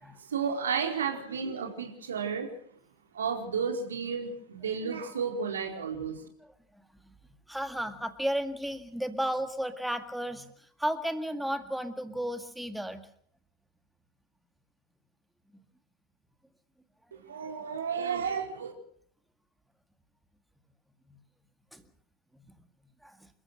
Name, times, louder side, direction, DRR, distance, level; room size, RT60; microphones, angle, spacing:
voice 1, 0.2-2.5 3.1-6.2 17.1-18.7, right 6 dB, 65° right, 3 dB, 4.4 m, -32 dB
voice 2, 7.5-13.1 17.4-17.5 21.1-21.2 21.7-21.8 22.3-22.4 23.0-23.3, equal, ahead, 9 dB, 2.0 m, -34 dB
28.5 x 15.0 x 6.5 m, 0.65 s
figure-of-eight pair, 90°, 0 cm